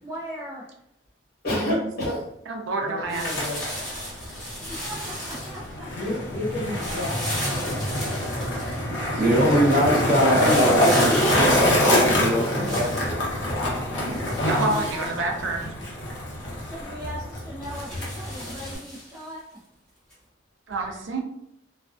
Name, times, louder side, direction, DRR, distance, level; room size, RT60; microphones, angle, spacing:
voice 1, 0.0-0.7 4.6-6.1 14.3-15.1 16.6-19.4, equal, 15° right, -8 dB, 0.4 m, -38 dB
voice 2, 1.4-2.3 2.8-3.6 5.9-7.9, left 1 dB, 50° left, -7 dB, 1.1 m, -30 dB
voice 3, 2.5-3.2 8.9-9.6 13.8-14.1 14.4-15.7 20.7-21.2, right 2 dB, 75° right, 1 dB, 0.5 m, -29 dB
Skateboard, 3.0-18.8, left 1 dB, 70° left, 0.7 m, -25 dB
sound 1, 3.1-5.7 6.8-8.8 10.3-13.1 14.0-15.6 16.1-16.2 16.6-16.7 17.6-19.2 20.1-20.2, equal, 5° left, 0.9 m, -35 dB
voice 4, 9.2-13.3, equal, 45° right, -5 dB, 0.8 m, -23 dB
2.4 x 2.2 x 2.4 m, 0.77 s
head